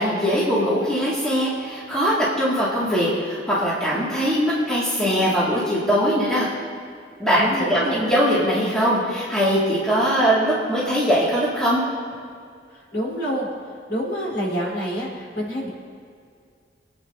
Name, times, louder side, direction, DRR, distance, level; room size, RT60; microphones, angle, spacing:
voice 1, 0.0-6.5 7.2-11.8, equal, 5° left, -9 dB, 2.1 m, -21 dB
voice 2, 7.4-8.0 12.7-13.5 13.9-15.7, equal, 75° left, -6 dB, 3.6 m, -27 dB
24.0 x 8.9 x 2.7 m, 2.2 s
head